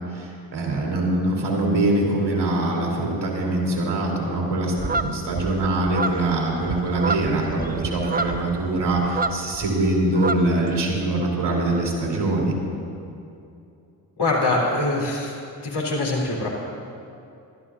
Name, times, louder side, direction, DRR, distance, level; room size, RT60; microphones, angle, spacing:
voice 1, 0.1-12.5, right 2 dB, 55° right, -2 dB, 3.3 m, -23 dB
sound 1, 4.8-9.7 10.0-11.0, right 3 dB, 20° right, 0.5 m, -29 dB
voice 2, 14.2-15.3 15.6-16.5, left 2 dB, 55° left, -3 dB, 3.7 m, -23 dB
23.0 x 12.0 x 2.5 m, 2.6 s
hypercardioid pair, 40°, 48 cm